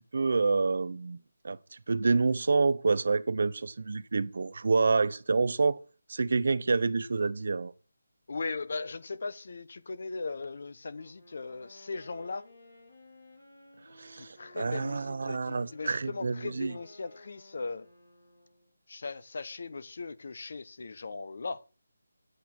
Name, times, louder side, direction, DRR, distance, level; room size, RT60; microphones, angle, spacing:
voice 1, 0.1-1.2 1.4-1.6 1.9-5.8 6.1-7.7 14.0-16.7, right 4 dB, 60° right, 0.7 m, -28 dB
voice 2, 8.3-12.5 14.2-17.9 18.9-21.6, left 3 dB, 55° left, 0.9 m, -38 dB
Wind instrument woodwind instrument, 10.9-18.8, left 2 dB, 80° left, 6.7 m, -56 dB
8.8 x 8.1 x 6.0 m
figure-of-eight pair, 165°, 0 cm